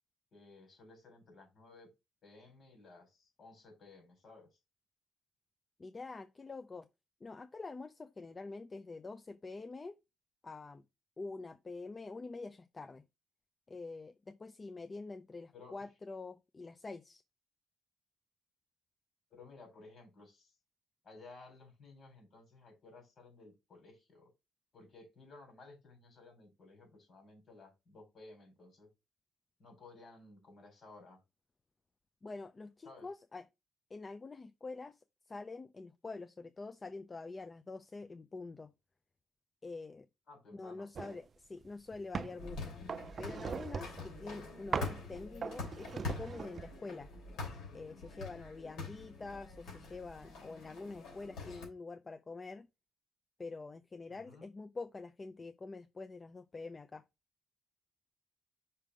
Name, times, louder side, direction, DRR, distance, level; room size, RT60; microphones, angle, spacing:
voice 1, 0.3-1.9 2.2-4.5 15.5-15.7 19.3-20.5 21.0-24.3 24.7-28.9 29.6-31.2 32.8-33.1 40.3-40.9 54.1-54.5, left 3 dB, 55° left, 3.9 m, -56 dB
voice 2, 5.8-6.9 7.2-10.0 10.4-10.8 11.2-13.0 13.7-17.2 32.2-33.5 33.9-35.0 35.3-38.7 39.6-40.1 40.5-42.7 43.2-47.1 47.7-52.7 53.4-57.0, left 3 dB, 30° left, 0.4 m, -46 dB
sound 1, 40.9-41.2 41.6-42.4 42.9-44.1 44.7-45.0 45.4-46.8, right 6 dB, 45° right, 0.4 m, -40 dB
sound 2, 42.4-51.7, left 4 dB, 85° left, 3.0 m, -45 dB
5.6 x 3.5 x 4.9 m
cardioid pair, 90°, 0 cm